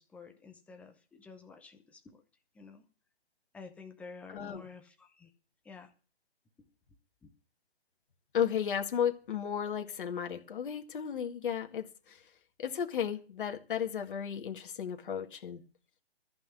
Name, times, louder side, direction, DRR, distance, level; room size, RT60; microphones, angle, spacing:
voice 1, 0.0-2.2 2.5-2.8 3.5-5.3 5.6-5.9 7.2-7.3, left 5 dB, 5° left, 0.7 m, -50 dB
voice 2, 4.3-4.6 8.3-12.2 12.6-15.6, left 8 dB, 50° left, 2.0 m, -34 dB
14.0 x 6.0 x 8.2 m
hypercardioid pair, 150°, 32 cm